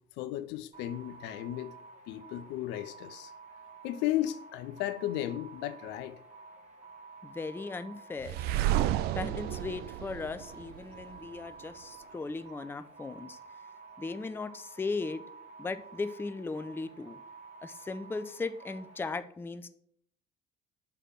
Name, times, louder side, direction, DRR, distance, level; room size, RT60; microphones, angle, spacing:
voice 1, 0.2-1.7 2.1-3.3 3.8-6.2, left 13 dB, 55° left, 0.6 m, -34 dB
sound 1, 0.7-19.1, right 4 dB, 35° right, 1.7 m, -51 dB
voice 2, 7.2-8.4 9.2-13.4 14.0-15.2 15.6-17.2 17.6-19.7, left 3 dB, 10° left, 0.5 m, -37 dB
sound 2, 8.2-11.2, right 13 dB, 50° right, 0.4 m, -31 dB
5.8 x 4.9 x 6.4 m
figure-of-eight pair, 55°, 21 cm